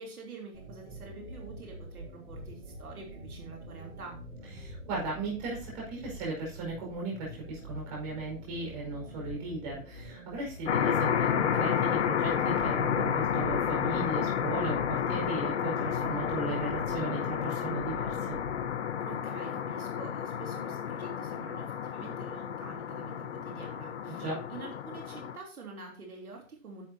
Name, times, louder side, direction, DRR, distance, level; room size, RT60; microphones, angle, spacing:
voice 1, 0.0-4.2 19.1-26.8, right 4 dB, 85° right, 0 dB, 3.2 m, -47 dB
sound 1, 0.5-19.0, equal, 70° right, 5.5 m, -46 dB
voice 2, 4.6-18.4 24.1-24.5, right 3 dB, 30° right, -2 dB, 5.2 m, -37 dB
sound 2, 10.7-25.4, left 8 dB, 50° left, 0.8 m, -31 dB
10.5 x 8.0 x 2.8 m, 0.38 s
hypercardioid pair, 165°, 43 cm